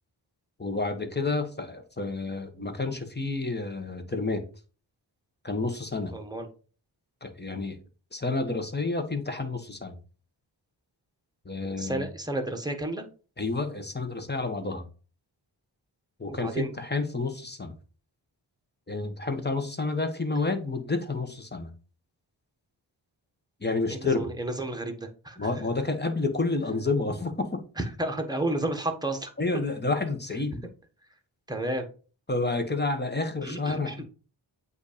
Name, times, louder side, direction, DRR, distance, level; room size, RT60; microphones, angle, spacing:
voice 1, 0.6-4.4 5.4-6.1 7.2-7.8 8.1-10.0 11.4-12.1 13.4-14.9 16.2-17.7 18.9-21.7 23.6-24.3 25.4-27.6 29.4-30.6 32.3-34.0, left 3 dB, 20° left, 1.2 m, -29 dB
voice 2, 6.1-6.5 11.8-13.1 16.3-16.7 23.9-25.5 27.8-29.3 31.5-31.8 33.4-33.9, right 2 dB, 10° right, 1.2 m, -31 dB
8.1 x 2.7 x 5.0 m
wide cardioid pair, 70°, 46 cm